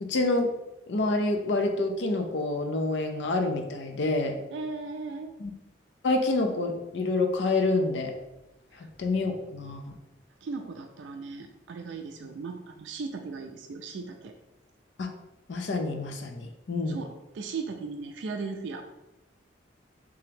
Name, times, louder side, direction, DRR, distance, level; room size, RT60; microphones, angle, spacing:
voice 1, 0.0-0.5 0.9-4.4 5.4-5.5 6.0-8.1 8.8-10.0 15.0-15.1 15.5-17.0, left 2 dB, 70° left, 5 dB, 0.5 m, -27 dB
voice 2, 4.5-5.3 8.7-8.9 10.4-14.3 16.9-18.9, right 4 dB, 75° right, 4 dB, 0.3 m, -37 dB
3.4 x 2.8 x 3.4 m, 0.96 s
head